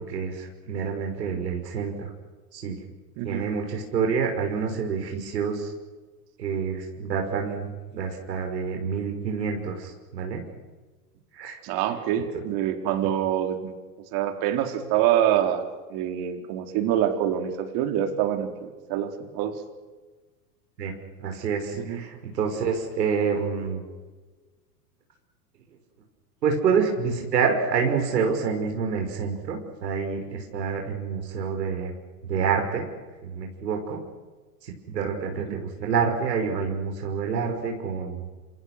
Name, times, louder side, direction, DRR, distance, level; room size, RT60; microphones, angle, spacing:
voice 1, 0.1-1.9 2.5-2.8 3.2-5.7 6.4-10.4 11.3-11.6 20.8-20.9 21.2-23.8 26.4-32.0 32.3-32.9 33.2-34.0 34.6-38.3, right 6 dB, 80° right, 2 dB, 5.7 m, -27 dB
voice 2, 11.6-13.8 14.1-15.6 15.9-19.6 21.7-22.0 35.5-35.6, right 10 dB, 50° right, 6 dB, 4.2 m, -26 dB
27.5 x 27.5 x 6.7 m, 1.3 s
hypercardioid pair, 110°, 48 cm